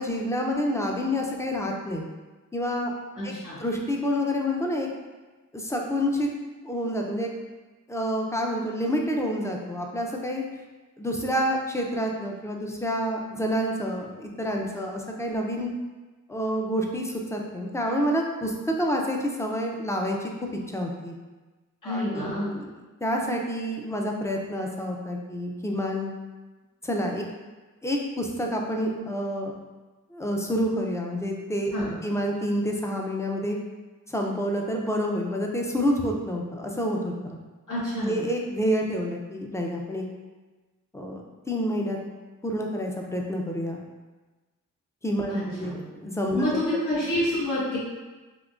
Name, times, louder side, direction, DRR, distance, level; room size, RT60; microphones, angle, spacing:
voice 1, 0.0-2.1 2.5-2.9 3.2-3.3 3.6-4.9 5.5-6.3 6.6-7.3 7.9-10.4 11.0-15.7 16.3-20.3 20.7-21.1 21.8-22.7 23.0-26.1 26.8-27.2 27.8-29.5 30.1-31.7 32.0-33.6 34.1-37.4 38.0-40.0 40.9-42.0 42.4-43.8 45.0-46.6, equal, 10° left, 0 dB, 0.5 m, -28 dB
voice 2, 3.1-3.6 21.8-22.5 31.7-32.0 37.7-38.2 45.3-45.8 46.3-47.8, left 1 dB, 65° left, -8 dB, 1.4 m, -28 dB
3.7 x 2.7 x 2.5 m, 1.2 s
cardioid pair, 45°, 34 cm